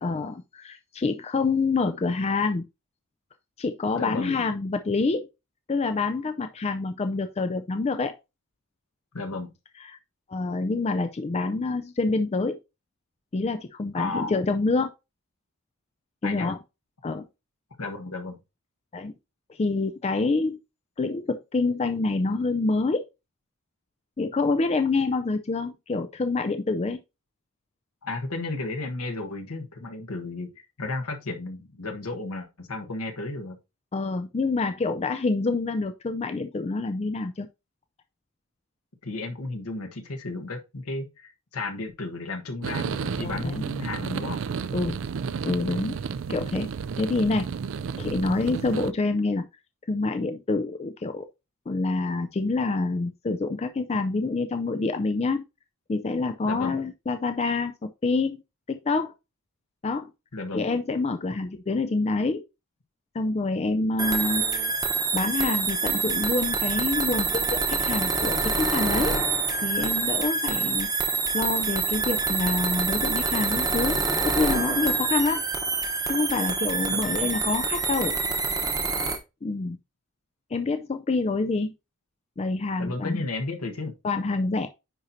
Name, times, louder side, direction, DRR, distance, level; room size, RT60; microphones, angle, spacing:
voice 1, 0.0-2.6 3.6-5.2 5.7-8.1 9.9-10.0 10.3-12.6 13.3-14.9 16.2-16.6 17.0-17.2 18.9-19.1 19.5-20.6 21.0-23.0 24.2-27.0 33.9-37.5 43.2-43.6 44.7-45.0 45.4-45.9 46.3-46.7 47.0-47.5 48.0-49.5 49.9-51.2 51.7-55.4 55.9-58.4 58.7-59.1 59.8-60.1 60.5-62.4 63.1-64.7 65.1-69.2 69.6-75.4 76.1-78.2 79.4-79.8 80.5-81.7 82.4-83.3 84.0-84.7, left 3 dB, 30° left, 0.4 m, -27 dB
voice 2, 3.9-4.4 9.1-9.5 13.9-14.3 16.2-16.5 17.8-18.4 28.0-33.6 39.0-44.4 48.3-48.4 56.4-56.8 60.3-60.7 76.9-77.2 82.8-84.0, left 2 dB, 80° left, 1.3 m, -33 dB
sound 1, 42.6-48.9, right 6 dB, 55° right, 0.3 m, -32 dB
sound 2, 64.0-79.2, right 4 dB, 15° right, 0.9 m, -26 dB
9.9 x 4.3 x 2.7 m
head